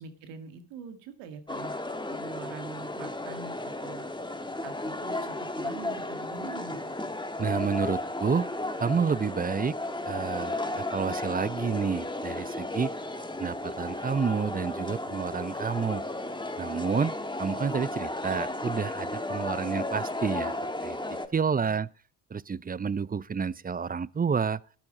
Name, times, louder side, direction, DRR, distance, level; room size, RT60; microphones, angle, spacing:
voice 1, 0.0-1.8 2.1-4.1 4.6-7.0, right 5 dB, 90° right, 1.9 m, -44 dB
sound 1, 1.5-21.3, left 2 dB, 10° left, 2.0 m, -34 dB
voice 2, 7.4-8.5 8.8-9.8 10.0-12.9 13.4-16.0 16.6-20.5 20.8-21.9 22.3-24.6, right 6 dB, 20° right, 0.6 m, -29 dB
12.5 x 12.5 x 5.3 m
supercardioid pair, 55°, 43 cm